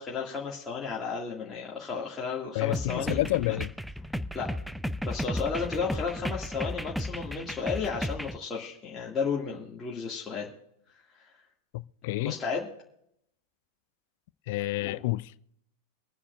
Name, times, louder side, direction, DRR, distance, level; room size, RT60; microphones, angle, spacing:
voice 1, 0.0-3.2 4.3-4.5 5.0-10.5 11.2-11.3 12.2-12.7 14.8-15.0, left 5 dB, 20° left, 2.4 m, -33 dB
voice 2, 2.5-3.7 11.7-12.3 14.5-15.3, left 18 dB, 55° left, 0.4 m, -29 dB
sound 1, 2.7-8.4, equal, ahead, 0.5 m, -34 dB
25.0 x 9.9 x 2.6 m
figure-of-eight pair, 95°, 0 cm